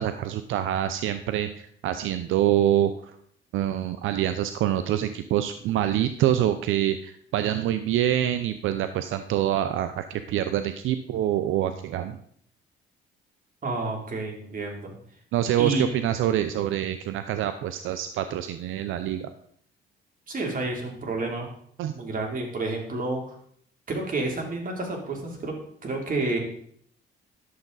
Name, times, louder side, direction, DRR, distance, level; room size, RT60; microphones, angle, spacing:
voice 1, 0.0-3.1 3.5-12.2 15.3-19.3 21.8-21.9, right 11 dB, 85° right, 10 dB, 0.6 m, -26 dB
voice 2, 13.6-14.9 15.6-16.0 20.3-21.5 21.9-23.3 23.9-25.5 25.8-26.4, right 2 dB, 45° right, 0 dB, 3.1 m, -30 dB
11.0 x 7.2 x 4.0 m, 0.63 s
cardioid pair, 90°, 20 cm